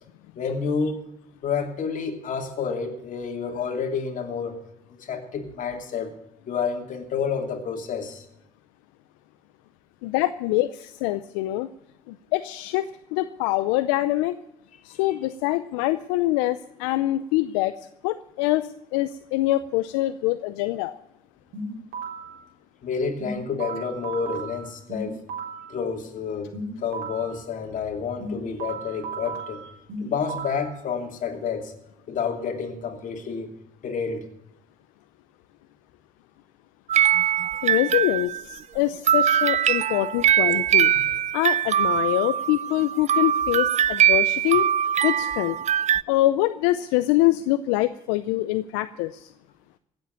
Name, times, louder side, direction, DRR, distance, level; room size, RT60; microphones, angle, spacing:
voice 1, 0.4-1.0 1.4-4.6 5.0-6.1 6.5-8.2 22.8-25.2 25.7-26.5 26.8-29.7 30.0-31.7 32.1-33.5 33.8-34.3, left 6 dB, 60° left, 4 dB, 2.9 m, -29 dB
voice 2, 10.0-11.7 12.1-14.3 14.8-20.9 37.6-40.9 41.3-44.7 45.0-45.6 46.1-49.3, left 16 dB, 85° left, 13 dB, 0.5 m, -24 dB
sound 1, 21.5-22.4 23.2-25.7 26.5-27.4 28.2-30.7, right 3 dB, 70° right, 4.0 m, -35 dB
sound 2, 36.9-38.5 39.1-46.0, right 10 dB, 50° right, 0.5 m, -22 dB
16.0 x 7.9 x 9.3 m, 0.84 s
hypercardioid pair, 55°, 15 cm